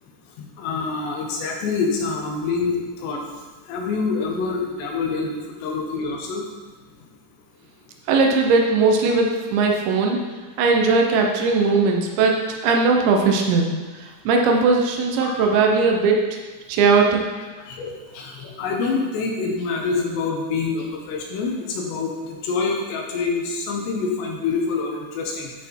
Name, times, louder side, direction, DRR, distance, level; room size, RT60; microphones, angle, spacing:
voice 1, 0.4-3.2 3.7-6.4 15.2-15.6 17.7-25.5, left 4 dB, 75° left, 1 dB, 3.2 m, -26 dB
voice 2, 8.1-10.2 10.6-13.7 14.0-16.4 16.7-17.2, right 4 dB, 80° right, 1 dB, 3.2 m, -19 dB
11.5 x 5.8 x 4.7 m, 1.3 s
omnidirectional pair, 5.3 m